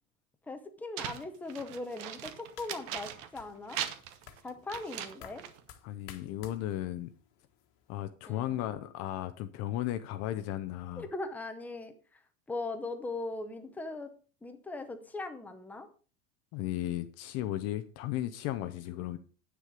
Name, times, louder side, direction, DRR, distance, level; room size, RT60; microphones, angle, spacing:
voice 1, 0.5-3.8 4.4-5.4 8.3-8.8 11.0-12.2 12.5-14.1 14.4-15.9, left 2 dB, 5° left, 0.6 m, -40 dB
sound 1, 1.0-3.4 3.7-5.6, right 10 dB, 50° right, 1.0 m, -40 dB
sound 2, 2.2-8.0, left 9 dB, 55° left, 1.4 m, -55 dB
voice 2, 5.8-7.1 7.9-11.1 16.5-19.2, left 13 dB, 40° left, 0.6 m, -35 dB
9.2 x 6.6 x 4.9 m
supercardioid pair, 160°, 41 cm